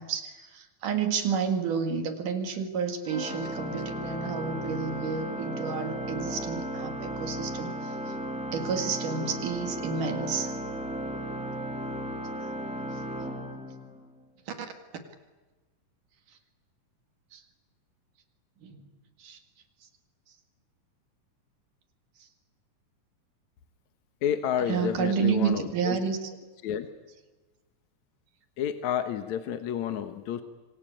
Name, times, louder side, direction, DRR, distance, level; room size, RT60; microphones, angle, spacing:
voice 1, 0.0-8.2 8.5-10.6 12.4-12.5 14.5-14.7 17.3-17.4 18.6-18.8 19.2-19.4 22.2-22.3 24.7-26.3, right 6 dB, 75° right, 7 dB, 3.5 m, -30 dB
Organ, 3.0-14.2, right 1 dB, ahead, 1.8 m, -35 dB
voice 2, 24.2-26.0 26.6-26.9 28.6-30.4, left 9 dB, 65° left, 9 dB, 2.4 m, -30 dB
26.0 x 24.5 x 8.7 m, 1.2 s
omnidirectional pair, 3.7 m